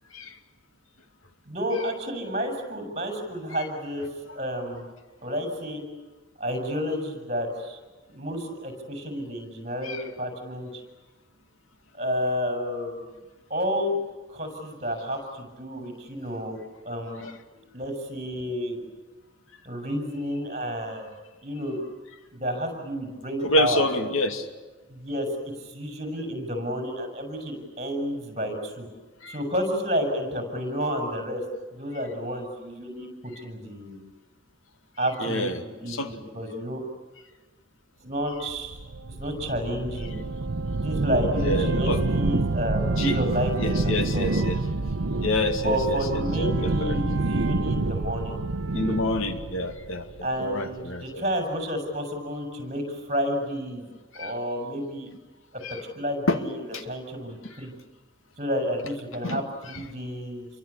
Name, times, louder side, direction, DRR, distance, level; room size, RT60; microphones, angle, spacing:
voice 1, 1.5-4.0 4.3-4.9 5.2-5.8 6.4-7.8 8.1-10.8 12.0-13.0 13.5-14.0 14.3-16.6 16.8-17.2 17.7-18.8 19.6-21.1 21.4-21.8 22.3-23.8 24.9-25.3 25.7-28.9 29.3-31.4 31.7-34.0 35.0-36.8 38.0-38.8 39.2-40.2 40.8-44.3 45.6-48.3 50.2-53.9 54.1-55.1 55.9-56.5 56.8-57.7 58.4-60.5, equal, 35° right, 4 dB, 6.7 m, -30 dB
voice 2, 23.4-24.5 29.2-29.4 35.2-36.2 41.4-42.0 43.0-43.2 43.6-44.6 45.2-47.0 48.7-51.2 54.1-54.3 55.6-55.8 56.3-56.4 56.7-56.8 59.2-59.8, left 1 dB, 80° left, 8 dB, 2.4 m, -28 dB
sound 1, 38.5-50.5, right 2 dB, 80° right, 0.8 m, -27 dB
28.5 x 23.5 x 8.4 m, 1.2 s
head